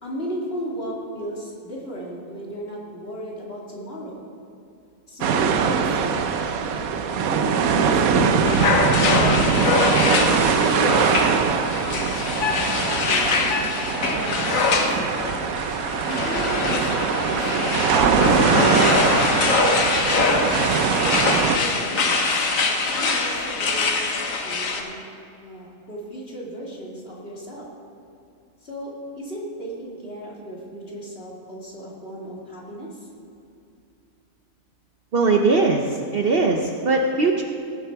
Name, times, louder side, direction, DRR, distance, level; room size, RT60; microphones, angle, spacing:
voice 1, 0.0-4.3 5.1-9.8 10.6-15.2 16.0-19.5 20.3-25.0 25.4-27.7 28.6-33.1, equal, 45° left, -4 dB, 2.6 m, -36 dB
sound 1, 5.2-21.6, right 6 dB, 85° right, 1.2 m, -22 dB
sound 2, 8.4-24.8, left 3 dB, 70° left, 1.5 m, -23 dB
voice 2, 35.1-37.4, right 3 dB, 50° right, 2 dB, 0.9 m, -20 dB
17.5 x 7.4 x 4.7 m, 2.6 s
omnidirectional pair, 1.5 m